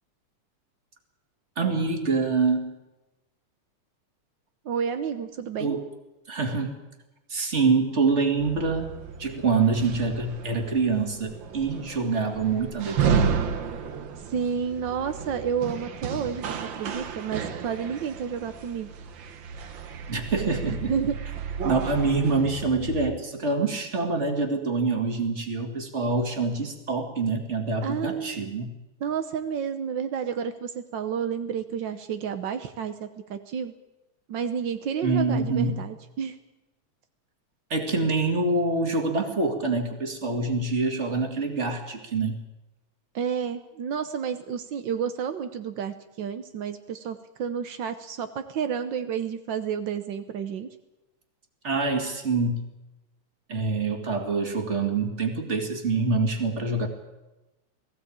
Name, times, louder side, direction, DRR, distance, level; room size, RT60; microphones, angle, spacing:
voice 1, 1.6-2.8 5.6-5.8 6.3-6.8 7.3-13.4 20.1-20.9 21.6-28.7 35.0-35.8 37.7-42.4 51.6-52.6 53.5-56.9, right 3 dB, 25° right, 4 dB, 2.2 m, -26 dB
voice 2, 4.6-5.8 14.3-18.9 20.9-21.2 27.8-28.4 29.0-33.7 34.3-36.4 43.1-50.7, right 7 dB, 80° right, 9 dB, 1.0 m, -30 dB
sound 1, 8.4-23.1, right 6 dB, 55° right, 1.3 m, -32 dB
19.0 x 15.5 x 8.7 m, 1.0 s
omnidirectional pair, 3.4 m